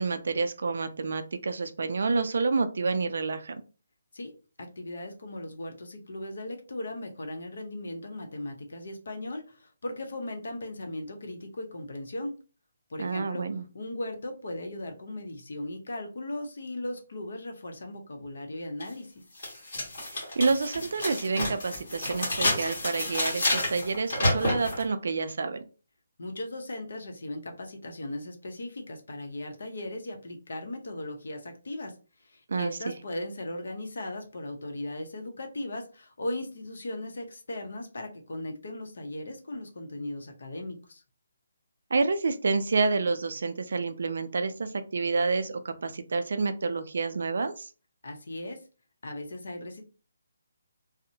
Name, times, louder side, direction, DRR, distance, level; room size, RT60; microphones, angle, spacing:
voice 1, 0.0-3.6 13.0-13.6 20.1-25.6 32.5-33.0 41.9-47.7, right 4 dB, 55° right, 10 dB, 0.3 m, -28 dB
voice 2, 4.6-12.4 12.9-13.5 13.7-19.2 26.2-41.0 48.0-48.6 49.0-49.8, left 1 dB, 65° left, 4 dB, 0.6 m, -37 dB
sound 1, 18.8-18.9 19.4-24.8, left 1 dB, 40° left, 1.3 m, -29 dB
2.7 x 2.0 x 2.6 m, 0.35 s
hypercardioid pair, 175°, 0 cm